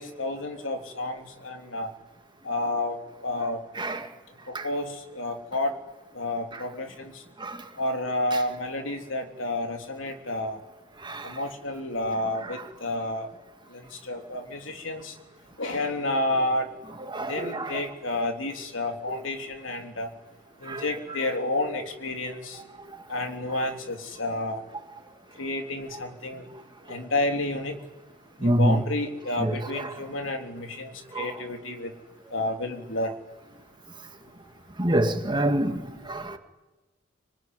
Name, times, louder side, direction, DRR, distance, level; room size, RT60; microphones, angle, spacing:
voice 1, 0.0-1.9 2.4-3.0 3.2-3.6 4.5-5.8 6.1-7.2 7.8-10.6 11.2-13.3 13.7-15.2 15.6-16.7 17.2-20.1 20.6-22.6 23.1-24.6 25.4-26.5 26.9-27.8 28.4-31.9 32.3-33.1, left 2 dB, 75° left, 3.5 m, -30 dB
voice 2, 3.8-4.1 4.5-4.7 6.5-6.6 7.4-7.7 8.3-8.4 11.0-11.4 12.4-12.5 17.1-17.8 20.6-20.9 21.2-21.3 22.9-23.0 26.9-27.0 28.4-28.8 29.4-29.9 31.1-31.4 34.8-36.4, right 1 dB, 25° right, 2.1 m, -27 dB
26.0 x 22.0 x 9.6 m
head